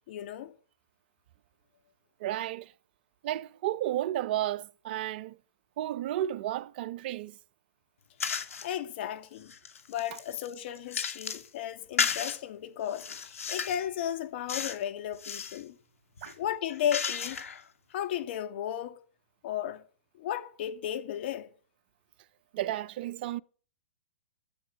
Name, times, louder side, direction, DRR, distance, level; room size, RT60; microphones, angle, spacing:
voice 1, 0.1-0.5 8.6-9.5 9.9-15.7 16.4-17.4 17.9-19.0 19.4-19.8 20.2-21.5, left 10 dB, 50° left, 2.6 m, -34 dB
voice 2, 2.2-2.7 3.2-5.4 5.8-7.3 16.2-16.3 22.5-23.4, right 13 dB, 45° right, 0.7 m, -32 dB
sound 1, 8.2-8.7 9.2-11.5 12.0-12.4 12.9-13.8 14.5-14.8 15.1-15.6 16.2-17.6, left 6 dB, 85° left, 2.6 m, -34 dB
12.5 x 7.9 x 9.4 m
hypercardioid pair, 145°, 7 cm